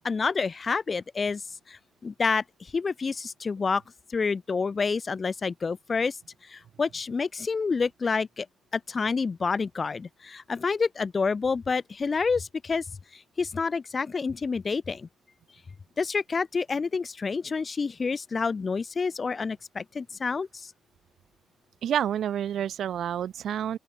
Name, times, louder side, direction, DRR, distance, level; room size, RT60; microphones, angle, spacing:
voice 1, 0.0-1.4 1.7-3.8 4.1-6.2 6.5-8.5 8.7-12.8 13.4-15.1 16.0-20.7, left 4 dB, 35° left, 0.8 m, -28 dB
voice 2, 21.8-23.8, right 9 dB, 65° right, 3.4 m, -28 dB
open air
cardioid pair, 90°, 0 cm